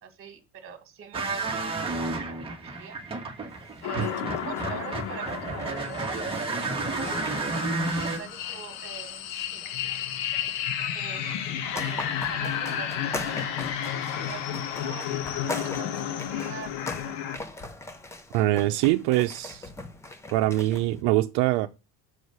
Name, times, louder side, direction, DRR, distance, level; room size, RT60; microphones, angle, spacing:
voice 1, 0.0-3.0 3.8-5.8 7.2-9.3 10.9-13.5 14.2-14.4 14.8-16.7 16.9-17.1, right 6 dB, 30° right, 1.7 m, -44 dB
sound 1, 1.1-8.2, right 3 dB, 15° right, 1.1 m, -31 dB
sound 2, 3.5-21.0, left 2 dB, 10° left, 0.3 m, -42 dB
sound 3, 3.8-17.4, left 9 dB, 85° left, 1.3 m, -32 dB
voice 2, 18.3-19.7 20.3-21.7, right 16 dB, 75° right, 0.7 m, -23 dB
6.5 x 4.8 x 6.6 m
cardioid pair, 180°, 41 cm